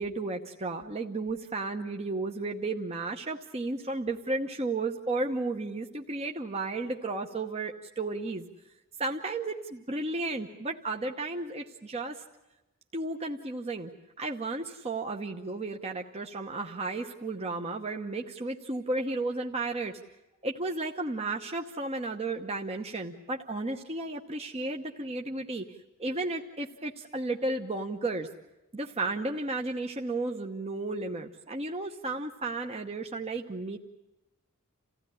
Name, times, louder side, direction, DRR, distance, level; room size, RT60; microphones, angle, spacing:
voice 1, 0.0-8.5 9.0-12.2 12.9-13.9 14.2-20.0 20.4-28.3 28.7-33.8, right 2 dB, 30° right, 3 dB, 1.0 m, -33 dB
28.5 x 16.0 x 10.0 m, 0.96 s
head